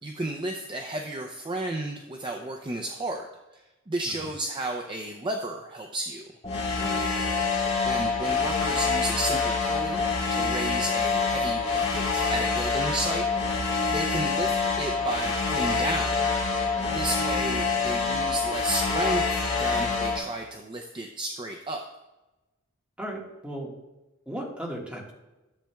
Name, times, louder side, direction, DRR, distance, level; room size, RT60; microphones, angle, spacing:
voice 1, 0.0-3.3 3.5-3.6 3.9-6.2 7.9-10.0 10.3-13.3 13.6-16.2 16.8-21.8, right 1 dB, 25° right, 2 dB, 0.5 m, -33 dB
sound 1, 6.4-20.2, left 4 dB, 30° left, 2.5 m, -26 dB
voice 2, 23.0-23.7 24.2-25.1, right 1 dB, 5° right, -3 dB, 1.6 m, -36 dB
13.0 x 7.5 x 2.3 m, 1.0 s
head